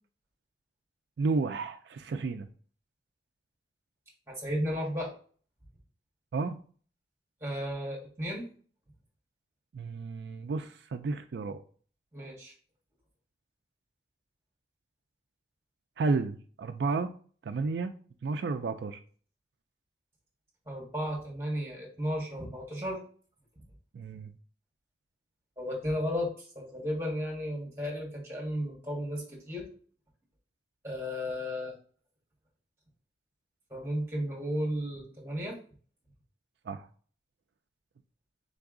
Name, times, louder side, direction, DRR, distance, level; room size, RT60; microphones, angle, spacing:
voice 1, 1.2-2.5 6.3-6.6 9.7-11.6 16.0-17.1 17.5-17.9 18.2-19.0 23.9-24.3 36.7-36.9, right 4 dB, 75° right, 0.4 m, -32 dB
voice 2, 4.3-5.1 7.4-8.5 12.1-12.5 20.7-23.0 25.6-29.7 30.8-31.7 33.7-35.6, equal, 15° right, 1.6 m, -34 dB
3.9 x 3.5 x 3.7 m
head